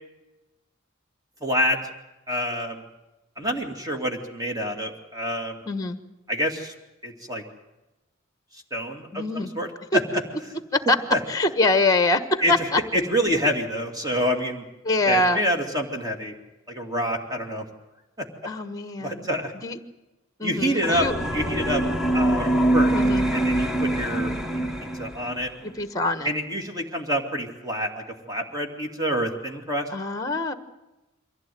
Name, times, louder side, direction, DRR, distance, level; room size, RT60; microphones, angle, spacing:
voice 1, 1.4-1.8 2.3-2.8 3.4-5.6 6.3-6.7 7.0-7.4 8.7-10.0 11.1-11.2 12.4-12.5 12.9-14.6 15.1-16.3 16.7-17.7 19.0-19.5 20.4-21.1 21.3-21.8 22.1-22.9 23.3-24.7 25.0-25.5 26.2-29.9, equal, 20° right, 4 dB, 2.4 m, -27 dB
voice 2, 5.6-6.0 9.1-9.5 9.9-10.0 10.7-11.0 11.3-12.8 14.8-15.5 18.4-19.3 19.6-19.8 20.4-21.1 22.9-23.3 25.6-26.3 29.9-30.5, left 2 dB, 15° left, 11 dB, 1.4 m, -24 dB
sound 1, 20.8-25.5, right 1 dB, ahead, 1.2 m, -24 dB
23.5 x 16.0 x 9.3 m, 1.0 s
head